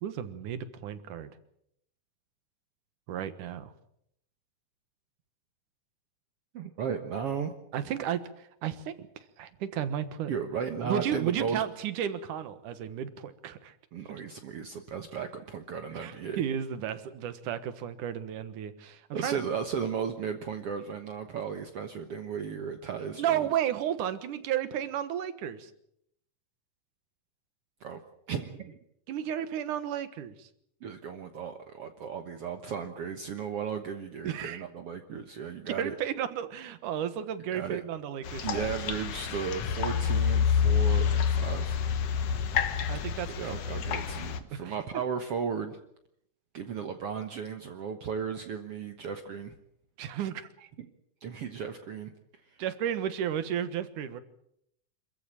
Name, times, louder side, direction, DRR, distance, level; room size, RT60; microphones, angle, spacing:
voice 1, 0.0-1.3 3.1-3.7 7.7-9.1 9.4-10.3 10.8-13.7 15.9-19.4 23.1-25.7 29.1-30.5 34.2-34.6 35.7-38.7 42.9-44.2 44.5-44.7 50.0-50.7 52.6-54.2, right 10 dB, 80° right, 12 dB, 2.9 m, -33 dB
voice 2, 6.5-7.5 10.3-11.6 13.9-16.4 19.1-23.5 27.8-28.0 28.3-28.8 30.8-36.0 37.5-37.8 38.4-41.8 43.4-45.8 46.5-49.6 51.2-52.1, right 7 dB, 55° right, 7 dB, 2.0 m, -35 dB
sound 1, 38.2-44.4, left 7 dB, 60° left, 2.2 m, -28 dB
27.0 x 14.5 x 8.9 m, 0.73 s
omnidirectional pair, 3.6 m